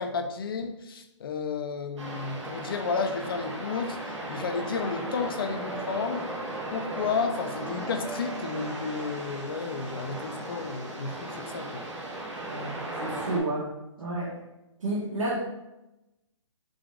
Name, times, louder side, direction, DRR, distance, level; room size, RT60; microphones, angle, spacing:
voice 1, 0.0-6.3 6.7-11.9, left 5 dB, 45° left, 6 dB, 0.5 m, -32 dB
sound 1, 2.0-13.4, right 1 dB, 65° right, 1.2 m, -36 dB
voice 2, 12.4-13.7 14.0-14.4 14.8-15.4, right 2 dB, 85° right, -6 dB, 1.5 m, -31 dB
4.8 x 2.5 x 3.7 m, 0.94 s
hypercardioid pair, 160°, 16 cm